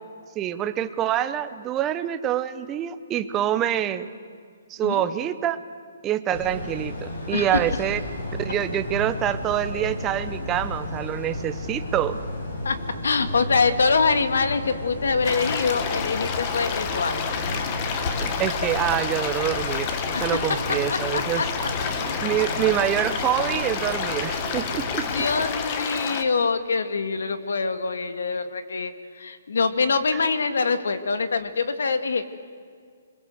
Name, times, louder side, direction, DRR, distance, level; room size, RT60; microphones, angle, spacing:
voice 1, 0.4-4.1 4.7-5.6 6.0-8.0 8.4-12.2 18.1-19.9 20.2-21.4 22.2-25.0 30.1-30.2, right 11 dB, 15° right, 11 dB, 0.8 m, -26 dB
sound 1, 6.3-25.5, left 1 dB, 70° left, 7.5 m, -33 dB
voice 2, 7.3-7.6 12.6-12.8 13.0-17.3 20.0-20.3 20.9-21.7 25.0-32.2, left 4 dB, 85° left, 10 dB, 2.1 m, -24 dB
sound 2, 15.2-26.2, left 6 dB, 25° left, 1.5 m, -29 dB
27.0 x 22.5 x 8.0 m, 2.1 s
hypercardioid pair, 170°, 0 cm